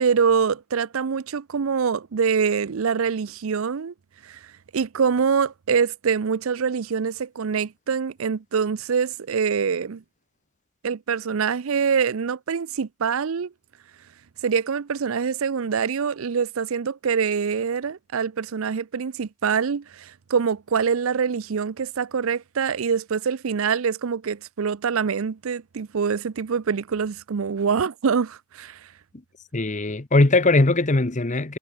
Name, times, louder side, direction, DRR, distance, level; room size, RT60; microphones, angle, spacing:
voice 1, 0.0-3.9 4.2-4.4 4.7-10.0 10.8-13.5 14.4-28.8, right 6 dB, 65° right, 0.5 m, -24 dB
voice 2, 29.5-31.6, left 2 dB, 35° left, 1.0 m, -20 dB
head